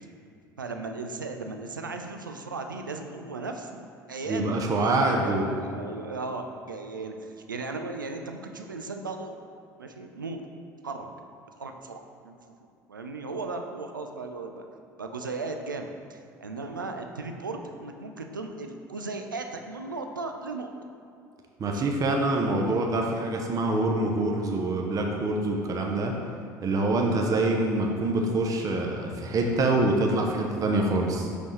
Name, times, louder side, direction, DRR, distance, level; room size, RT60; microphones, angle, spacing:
voice 1, 0.6-9.3 9.8-10.4 10.8-11.1 11.6-12.6 12.9-14.7 15.0-20.7 21.6-21.9, right 3 dB, 90° right, 5 dB, 0.4 m, -36 dB
voice 2, 4.3-5.5 21.6-26.2 26.6-31.3, right 2 dB, 35° right, 1 dB, 0.7 m, -25 dB
5.8 x 5.1 x 3.2 m, 2.4 s
figure-of-eight pair, 65°, 10 cm